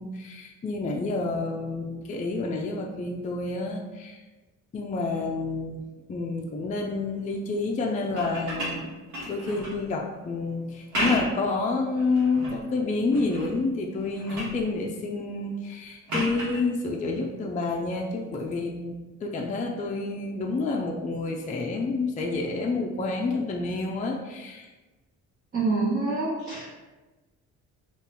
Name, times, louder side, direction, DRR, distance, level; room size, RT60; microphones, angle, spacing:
voice 1, 0.0-4.2 4.7-5.8 6.1-8.9 9.3-18.9 19.2-24.7, left 3 dB, 25° left, 0 dB, 0.4 m, -29 dB
sound 1, 8.0-9.8 10.7-11.5 12.0-12.6 13.1-13.6 13.9-14.6 16.1-16.6 18.4-18.5, equal, 70° right, 1.2 m, -32 dB
voice 2, 25.5-26.7, right 3 dB, 35° right, -10 dB, 1.2 m, -26 dB
2.8 x 2.4 x 3.5 m, 1.2 s
cardioid pair, 90°, 30 cm